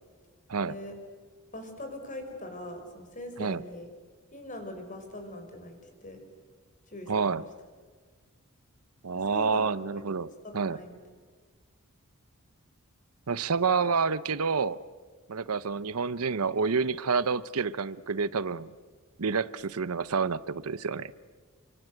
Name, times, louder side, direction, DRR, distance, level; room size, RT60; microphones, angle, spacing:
voice 1, 0.6-0.9 1.5-3.9 4.3-6.2 6.9-7.4 9.1-9.7 10.1-11.0, left 1 dB, 35° left, 5 dB, 5.3 m, -42 dB
voice 2, 7.1-7.4 9.0-10.8 13.3-14.8 15.3-18.7 19.2-21.1, right 5 dB, 80° right, 17 dB, 0.7 m, -28 dB
29.5 x 24.5 x 8.0 m, 1.5 s
head